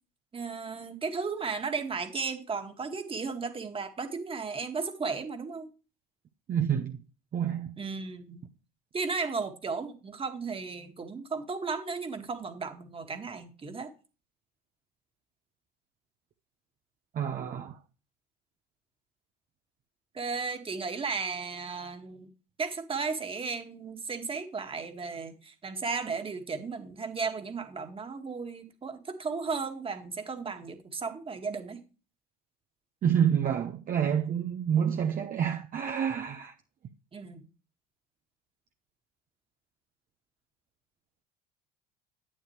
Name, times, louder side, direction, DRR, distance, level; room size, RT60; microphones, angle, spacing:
voice 1, 0.3-5.7 7.8-8.4 8.9-13.9 20.1-22.3 22.6-31.8 37.1-37.4, right 4 dB, 25° right, 2.0 m, -35 dB
voice 2, 6.5-7.0 7.3-7.8 17.1-17.8 33.0-36.5, right 8 dB, 40° right, 1.1 m, -28 dB
11.5 x 8.8 x 3.2 m
supercardioid pair, 90°, 21 cm